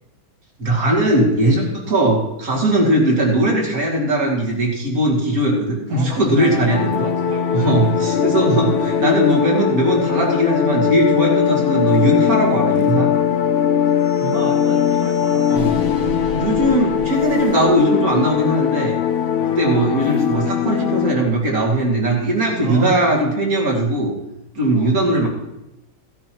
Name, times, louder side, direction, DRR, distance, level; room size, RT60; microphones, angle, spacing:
voice 1, 0.6-7.0 7.5-13.1 15.5-15.7 16.3-18.9 19.6-24.1 24.5-25.3, right 1 dB, 45° right, -2 dB, 2.9 m, -19 dB
voice 2, 5.9-8.0 14.2-15.7 19.4-19.7 22.6-23.0 24.7-24.9, right 5 dB, 75° right, 0 dB, 1.9 m, -33 dB
sound 1, 6.4-21.1, left 8 dB, 75° left, 0.5 m, -20 dB
sound 2, 14.0-18.3, left 3 dB, 55° left, 1.9 m, -34 dB
16.0 x 11.0 x 3.1 m, 0.89 s
omnidirectional pair, 2.2 m